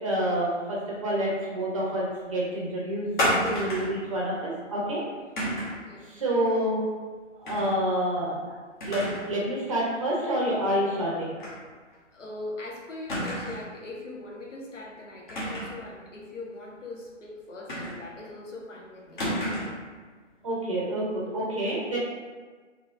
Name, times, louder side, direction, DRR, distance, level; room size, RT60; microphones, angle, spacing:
voice 1, 0.0-3.1 3.4-5.0 6.0-6.9 7.4-8.4 8.9-11.4 20.4-22.0, right 1 dB, 25° right, -5 dB, 0.6 m, -28 dB
sound 1, 3.2-4.0 5.4-5.8 7.5-7.8 8.2-8.3 8.8-9.3 9.7-9.8 11.4-11.6 11.9-12.0 13.1-13.7 15.3-15.8 17.7-18.3 19.2-19.8, equal, 40° left, 1.0 m, -30 dB
voice 2, 12.1-19.2, left 2 dB, 75° left, -2 dB, 1.0 m, -41 dB
3.9 x 2.8 x 2.6 m, 1.5 s
figure-of-eight pair, 140°, 37 cm